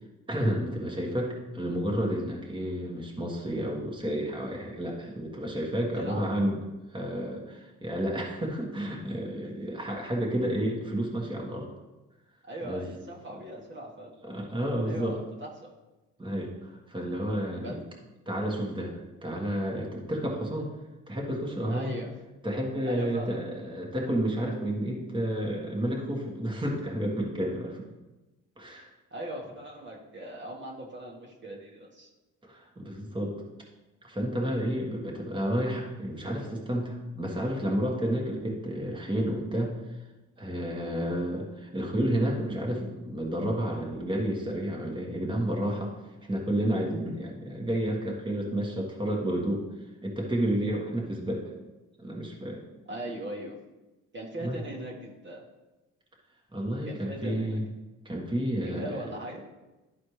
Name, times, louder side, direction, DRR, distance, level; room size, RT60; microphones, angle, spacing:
voice 1, 0.3-6.6 6.9-11.7 12.6-12.8 14.2-15.2 16.2-17.8 18.2-20.7 21.1-21.9 22.4-27.8 28.6-28.9 32.5-33.3 34.0-39.7 40.4-45.9 46.3-49.6 50.0-51.4 52.0-52.6 54.4-54.6 56.5-57.6 58.0-58.8, right 1 dB, 15° right, -2 dB, 1.4 m, -31 dB
voice 2, 5.9-6.3 12.4-14.1 14.8-15.7 17.6-17.8 21.7-22.1 22.8-23.4 29.1-32.1 52.9-53.6 54.1-55.4 56.8-57.6 58.6-59.4, right 1 dB, 40° right, -3 dB, 1.5 m, -39 dB
11.5 x 4.2 x 3.2 m, 1.1 s
cardioid pair, 90°, 30 cm